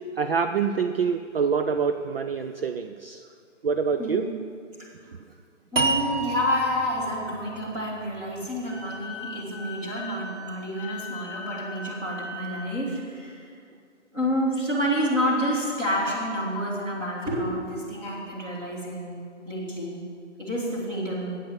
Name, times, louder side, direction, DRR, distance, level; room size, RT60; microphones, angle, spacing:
voice 1, 0.2-3.2 3.6-4.3, right 6 dB, 50° right, 8 dB, 0.5 m, -26 dB
voice 2, 4.0-4.3 5.7-13.5 14.1-20.0 20.4-21.4, equal, 10° right, -6 dB, 1.8 m, -29 dB
sound 1, 5.8-8.9, right 3 dB, 85° right, 1.6 m, -30 dB
Wind instrument woodwind instrument, 8.7-12.7, left 3 dB, 5° left, 3.1 m, -39 dB
8.8 x 8.5 x 7.1 m, 2.3 s
hypercardioid pair, 160°, 37 cm